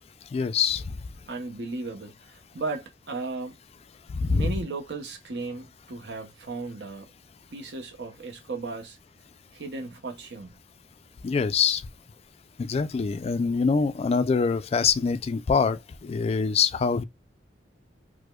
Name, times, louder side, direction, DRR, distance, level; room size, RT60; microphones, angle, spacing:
voice 1, 0.3-1.0 4.1-4.5 11.2-11.8 12.6-17.0, left 5 dB, 35° left, 0.3 m, -24 dB
voice 2, 1.3-3.5 4.3-7.1 7.5-9.0 9.5-10.5, right 3 dB, 70° right, 0.8 m, -35 dB
4.7 x 2.1 x 2.2 m
head